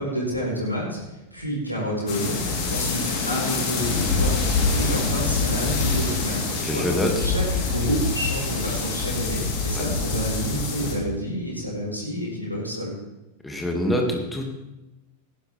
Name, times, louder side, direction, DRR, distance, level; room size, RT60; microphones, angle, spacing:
voice 1, 0.0-2.4 2.7-6.8 7.2-12.9, equal, 90° right, -3 dB, 4.4 m, -29 dB
sound 1, 2.1-10.9, left 3 dB, 40° left, 3.5 m, -25 dB
voice 2, 6.6-7.3 9.7-9.8 13.4-14.4, left 1 dB, 5° left, 1 dB, 2.4 m, -25 dB
17.5 x 11.0 x 3.5 m, 1.0 s
figure-of-eight pair, 90°, 0 cm